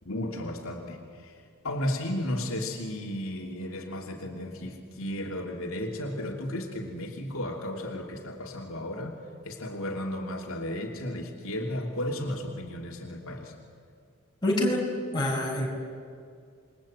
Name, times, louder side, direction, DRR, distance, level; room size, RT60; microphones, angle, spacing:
voice 1, 0.0-9.2 9.4-13.5, left 1 dB, 75° left, 0 dB, 3.1 m, -34 dB
voice 2, 14.4-14.8 15.1-15.7, left 1 dB, 20° left, -2 dB, 5.9 m, -26 dB
28.0 x 22.5 x 9.0 m, 2.3 s
head